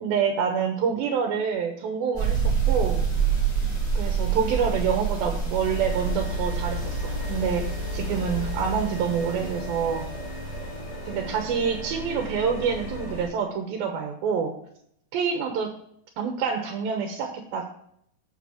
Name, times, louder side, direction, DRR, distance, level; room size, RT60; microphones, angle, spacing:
voice 1, 0.0-3.0 4.0-7.7 7.9-10.0 11.1-14.5 15.1-15.7 16.2-17.6, right 6 dB, 80° right, 4 dB, 2.9 m, -27 dB
sound 1, 2.1-10.6, right 6 dB, ahead, 4.2 m, -28 dB
sound 2, 5.6-13.3, equal, 45° left, 5.4 m, -33 dB
7.2 x 6.9 x 6.3 m, 0.70 s
omnidirectional pair, 4.2 m